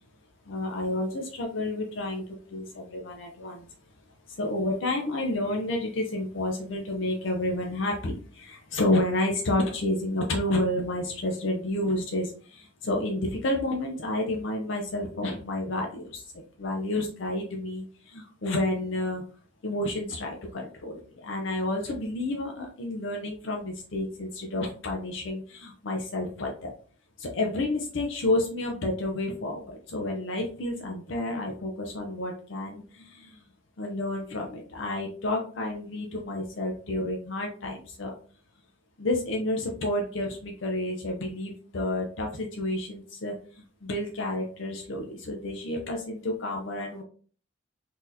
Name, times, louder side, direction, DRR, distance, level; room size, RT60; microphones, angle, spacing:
voice 1, 0.5-2.2 2.5-3.7 4.3-16.2 16.6-19.2 19.6-26.7 27.2-33.4 33.8-38.1 39.0-47.0, left 1 dB, 70° left, 1 dB, 0.6 m, -30 dB
3.8 x 2.9 x 2.6 m, 0.42 s
head